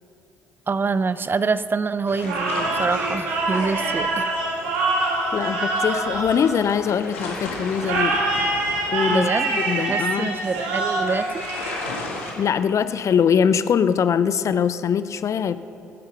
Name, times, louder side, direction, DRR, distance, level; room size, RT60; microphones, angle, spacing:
voice 1, 0.7-4.4 9.1-11.4, right 4 dB, 30° right, 14 dB, 0.6 m, -26 dB
sound 1, 2.1-12.3, left 2 dB, 90° left, 1.8 m, -36 dB
sound 2, 2.2-7.0 7.8-12.2, right 2 dB, 80° right, 2.6 m, -25 dB
voice 2, 5.3-8.2 8.9-9.3 9.6-10.3 12.4-15.6, left 7 dB, 50° left, 14 dB, 0.6 m, -22 dB
18.0 x 10.5 x 5.9 m, 2.9 s
hypercardioid pair, 50°, 7 cm